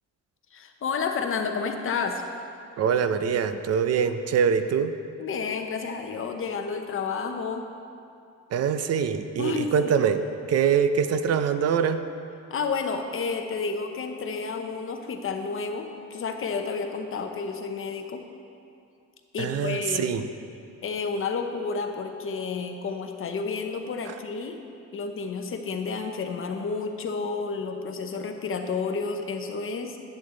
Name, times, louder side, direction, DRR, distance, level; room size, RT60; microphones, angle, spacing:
voice 1, 0.5-2.2 5.2-7.7 9.4-9.7 10.0-10.1 12.5-18.2 19.3-20.1 20.8-24.6 24.9-30.0, left 5 dB, 40° left, 5 dB, 0.8 m, -30 dB
voice 2, 2.8-4.9 8.5-10.2 10.5-12.0 19.4-20.3, right 7 dB, 55° right, 10 dB, 0.5 m, -24 dB
11.0 x 8.3 x 3.8 m, 2.5 s
cardioid pair, 150°, 31 cm